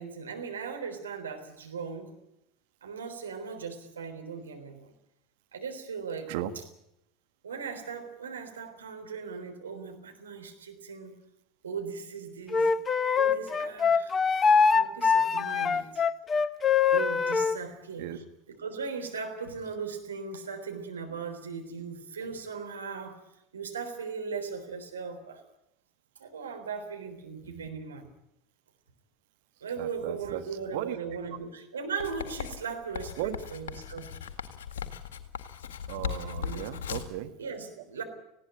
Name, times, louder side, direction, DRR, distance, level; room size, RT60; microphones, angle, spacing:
voice 1, 0.0-2.2 2.8-4.9 5.5-6.6 7.4-11.2 11.6-12.7 13.2-14.1 14.7-16.0 16.9-23.2 23.5-25.4 26.2-28.1 29.6-34.1 36.4-36.7 37.4-38.0, right 5 dB, 80° right, 5 dB, 3.7 m, -38 dB
Wind instrument woodwind instrument, 12.5-17.6, left 5 dB, 25° left, 1.0 m, -23 dB
voice 2, 29.8-30.4 30.7-30.9 33.2-33.4 35.9-37.3, right 14 dB, 60° right, 8 dB, 1.7 m, -35 dB
Writing, 32.0-37.2, left 8 dB, 70° left, 1.9 m, -38 dB
19.5 x 16.5 x 9.0 m, 0.79 s
figure-of-eight pair, 75°, 0 cm